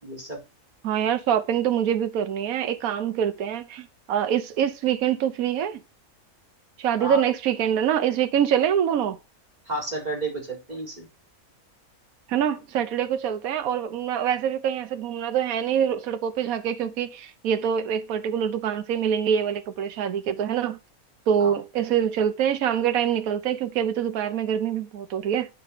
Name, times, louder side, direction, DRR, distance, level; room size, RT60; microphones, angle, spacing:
voice 1, 0.0-0.4 7.0-7.2 9.7-11.1 21.4-21.6, right 2 dB, 30° right, 4.4 m, -32 dB
voice 2, 0.8-5.8 6.8-9.2 12.3-20.8 21.3-25.5, right 9 dB, 75° right, 1.2 m, -25 dB
9.6 x 5.0 x 5.7 m
omnidirectional pair, 1.5 m